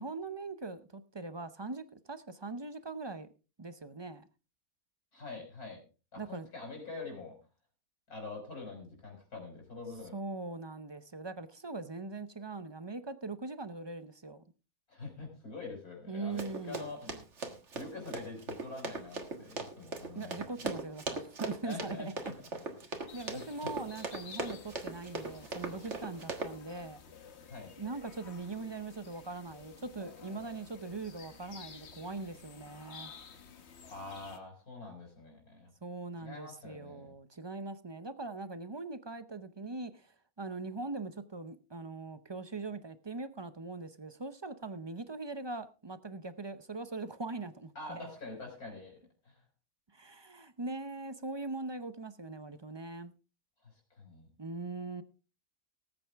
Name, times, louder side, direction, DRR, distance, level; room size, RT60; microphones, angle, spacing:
voice 1, 0.0-3.3 3.6-4.3 6.2-6.5 10.1-14.4 16.1-16.9 20.1-22.1 23.1-27.0 27.8-33.1 35.8-48.1 49.9-53.1 54.4-55.0, right 3 dB, 30° right, 0.5 m, -41 dB
voice 2, 5.1-5.8 6.1-7.4 8.1-10.1 14.9-17.3 17.7-20.7 21.6-22.5 23.3-23.7 27.5-27.7 33.9-35.7 36.2-37.1 47.8-49.0 49.2-49.4 53.6-54.3, left 3 dB, 90° left, 5.9 m, -45 dB
Run, 16.4-26.5, right 3 dB, 55° right, 1.9 m, -39 dB
sound 1, 23.1-34.4, left 6 dB, 50° left, 1.3 m, -52 dB
19.0 x 8.8 x 3.5 m
omnidirectional pair, 1.5 m